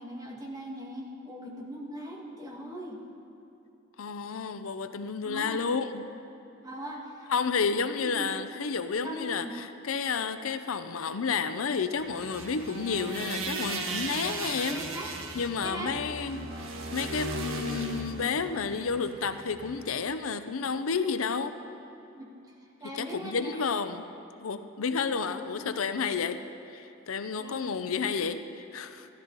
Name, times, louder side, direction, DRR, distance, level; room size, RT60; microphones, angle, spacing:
voice 1, 0.0-3.0 5.2-5.7 6.6-7.3 7.5-8.3 9.0-9.5 14.2-14.4 14.7-15.1 15.6-15.9 16.4-16.6 21.9-23.6 24.8-24.9 25.1-25.7 27.3-28.1, equal, 20° right, -3 dB, 1.9 m, -41 dB
voice 2, 4.0-6.1 7.3-9.5 9.8-14.8 15.4-16.5 16.9-21.5 23.0-24.0 24.4-26.4 26.7-29.1, left 5 dB, 90° left, 10 dB, 0.6 m, -31 dB
sound 1, 12.0-20.0, right 2 dB, 90° right, 1.3 m, -37 dB
15.0 x 12.5 x 4.0 m, 3.0 s
head